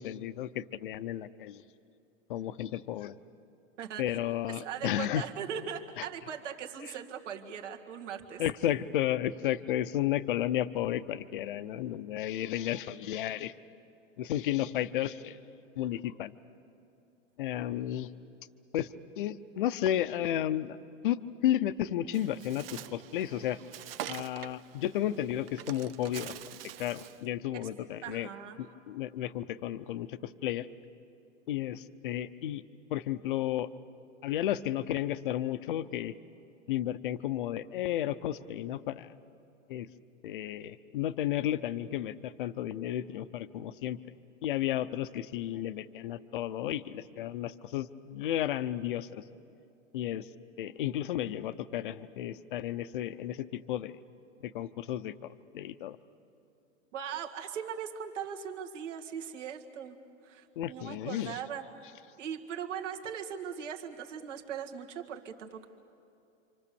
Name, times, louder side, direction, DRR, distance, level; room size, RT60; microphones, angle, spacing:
voice 1, 0.0-1.6 2.3-3.1 4.0-5.3 6.0-6.1 8.4-13.5 14.2-15.4 15.8-16.3 17.4-18.1 18.7-20.8 21.0-23.6 24.1-26.3 26.8-28.3 28.9-30.7 31.5-32.6 32.9-33.7 34.2-36.1 36.7-39.1 39.7-39.9 40.2-44.1 44.4-49.2 49.9-50.3 50.6-54.0 54.4-56.0 60.6-61.4, left 12 dB, 40° left, 13 dB, 0.6 m, -33 dB
voice 2, 3.8-4.2 4.5-8.4 27.6-27.7 28.0-28.6 56.9-60.0 60.2-61.7 62.2-65.7, right 8 dB, 65° right, 3 dB, 2.1 m, -39 dB
Bird, 22.1-27.3, right 11 dB, 50° right, 0.6 m, -45 dB
28.0 x 26.0 x 6.9 m, 2.7 s
supercardioid pair, 175°, 39 cm